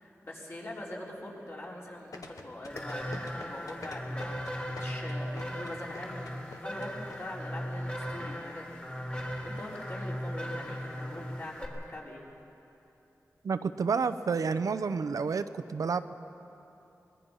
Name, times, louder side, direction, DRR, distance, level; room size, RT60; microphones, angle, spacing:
voice 1, 0.0-12.3, left 1 dB, 45° left, -4 dB, 4.3 m, -43 dB
sound 1, 2.1-7.2 7.4-7.5, left 3 dB, 85° left, 1.4 m, -45 dB
sound 2, 2.7-11.7, equal, 25° left, 3.1 m, -37 dB
voice 2, 13.4-16.1, right 5 dB, 90° right, 10 dB, 0.7 m, -30 dB
23.5 x 20.5 x 5.6 m, 2.8 s
wide cardioid pair, 75°, 6 cm